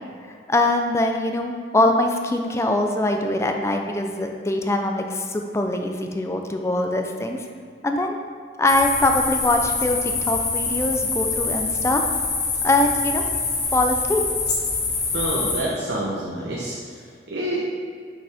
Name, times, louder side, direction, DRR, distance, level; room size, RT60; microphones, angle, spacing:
voice 1, 0.5-7.4 7.8-8.2 8.6-12.0 12.6-13.2 13.7-14.2, left 2 dB, 15° left, 4 dB, 0.4 m, -22 dB
sound 1, 8.7-15.6, left 4 dB, 70° left, 1.3 m, -25 dB
voice 2, 15.1-16.8 17.3-17.6, right 1 dB, 80° right, -5 dB, 0.9 m, -27 dB
6.3 x 5.2 x 3.4 m, 2.2 s
head